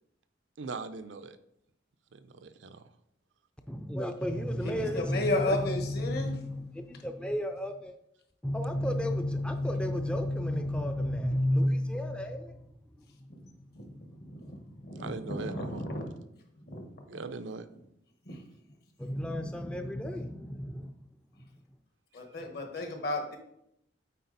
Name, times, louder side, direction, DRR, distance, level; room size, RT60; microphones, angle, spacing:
voice 1, 0.6-1.4 2.1-2.9 15.0-15.8 17.1-17.7, right 4 dB, 90° right, 10 dB, 0.6 m, -40 dB
voice 2, 3.7-8.0 8.4-12.6 13.2-14.5 19.0-21.0, left 1 dB, 5° left, 6 dB, 0.4 m, -32 dB
voice 3, 4.8-6.3 13.3-13.4 13.7-16.1 16.7-16.9 18.3-18.4 22.1-23.4, left 2 dB, 60° left, 3 dB, 1.4 m, -34 dB
8.4 x 4.3 x 4.1 m, 0.76 s
head